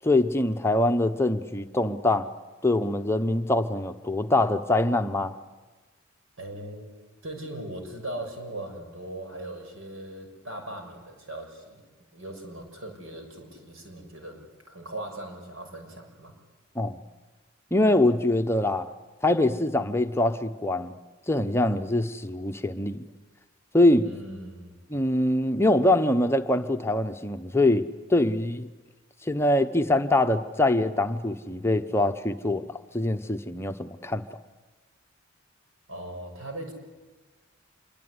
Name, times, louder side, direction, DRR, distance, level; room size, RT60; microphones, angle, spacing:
voice 1, 0.0-2.3 2.6-5.3 16.8-17.0 17.7-18.9 19.2-21.0 21.3-23.0 23.7-24.1 24.9-28.7 29.2-32.7 32.9-34.2, left 1 dB, 15° left, 0.9 m, -24 dB
voice 2, 6.4-6.9 7.2-11.8 12.1-16.3 24.0-24.8 35.9-36.7, right 1 dB, 80° right, 6.5 m, -39 dB
26.0 x 23.5 x 9.7 m
head